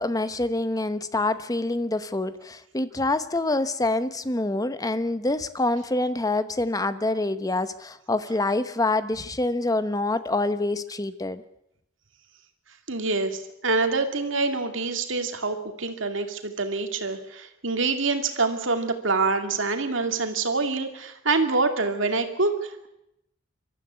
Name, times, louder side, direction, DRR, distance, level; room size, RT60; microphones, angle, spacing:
voice 1, 0.0-11.4, left 2 dB, 20° left, 12 dB, 0.9 m, -26 dB
voice 2, 12.9-22.9, right 3 dB, 65° right, 6 dB, 2.4 m, -26 dB
24.0 x 13.5 x 9.7 m, 0.82 s
head